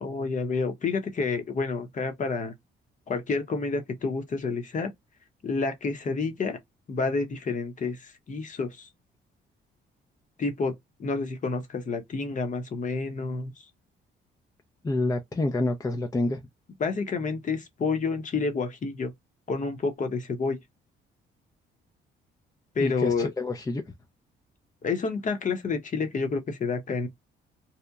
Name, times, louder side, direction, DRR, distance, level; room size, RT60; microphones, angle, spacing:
voice 1, 0.0-2.5 3.1-4.9 5.4-6.6 6.9-8.9 10.4-10.7 11.0-13.5 16.8-19.1 19.5-20.6 22.8-23.3 24.8-27.1, left 4 dB, 40° left, 0.7 m, -29 dB
voice 2, 14.8-16.4 22.8-23.8, left 2 dB, 15° left, 0.4 m, -27 dB
2.7 x 2.1 x 2.3 m
cardioid pair, 90°, 20 cm